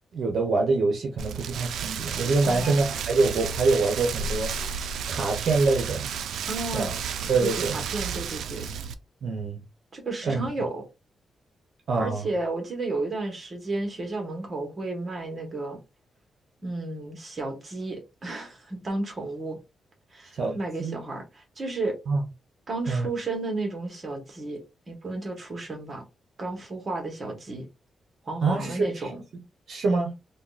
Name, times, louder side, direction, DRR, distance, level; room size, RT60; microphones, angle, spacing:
voice 1, 0.1-4.5 5.1-6.1 6.7-7.0 7.3-7.8 9.2-9.6 10.2-10.4 11.9-12.3 20.4-21.0 22.1-22.2 22.9-23.1 28.4-29.1 29.7-30.1, right 3 dB, 55° right, 0.7 m, -25 dB
Rain, 1.2-8.9, right 7 dB, 90° right, 0.3 m, -32 dB
voice 2, 2.4-2.8 6.5-7.0 7.4-8.7 9.9-10.8 12.0-15.8 16.6-19.6 20.1-22.0 22.7-24.6 24.9-26.0 26.4-27.6 28.3-29.2, right 2 dB, 30° right, 1.0 m, -32 dB
3.5 x 2.2 x 2.4 m
wide cardioid pair, 155°, 0 cm